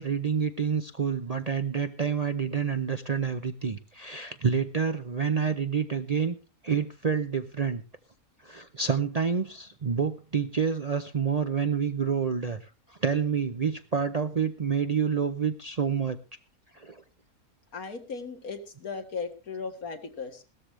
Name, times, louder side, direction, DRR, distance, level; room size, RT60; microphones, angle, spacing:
voice 1, 0.0-6.3 6.6-7.8 8.4-12.6 13.0-16.2 16.7-17.0, right 6 dB, 40° right, 10 dB, 0.5 m, -28 dB
voice 2, 17.7-20.4, left 5 dB, 85° left, 6 dB, 2.3 m, -37 dB
17.0 x 13.5 x 3.2 m, 0.32 s
omnidirectional pair, 1.5 m